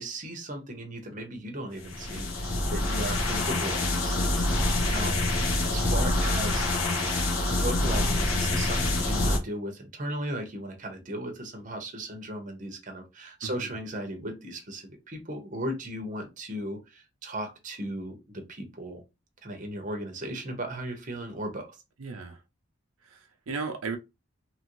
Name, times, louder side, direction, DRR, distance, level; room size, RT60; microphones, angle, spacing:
voice 1, 0.0-5.2 5.6-6.7 7.5-19.0 19.4-21.8, right 1 dB, 40° right, 0.7 m, -36 dB
sound 1, 1.8-9.4, left 2 dB, 85° left, 0.9 m, -26 dB
voice 2, 22.0-22.4 23.0-24.0, right 4 dB, 85° right, 0.5 m, -36 dB
2.9 x 2.5 x 3.0 m
head